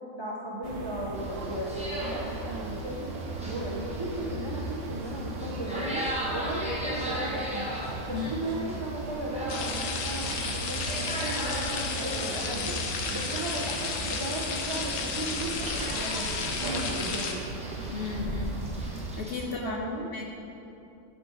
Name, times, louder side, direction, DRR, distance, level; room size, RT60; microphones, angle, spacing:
voice 1, 0.2-3.1 3.4-6.0 6.3-7.7 8.1-12.8 13.1-17.4 19.4-20.1, right 1 dB, 35° right, -3 dB, 0.4 m, -36 dB
sound 1, 0.6-19.2, right 3 dB, 75° right, 1.0 m, -38 dB
sound 2, 1.1-19.4, equal, 5° right, 0.8 m, -38 dB
sound 3, 9.5-17.3, left 5 dB, 85° left, 1.1 m, -33 dB
voice 2, 17.9-18.6 19.2-19.8 20.1-20.3, left 6 dB, 60° left, 1 dB, 0.6 m, -35 dB
9.8 x 4.8 x 3.8 m, 2.8 s
omnidirectional pair, 1.3 m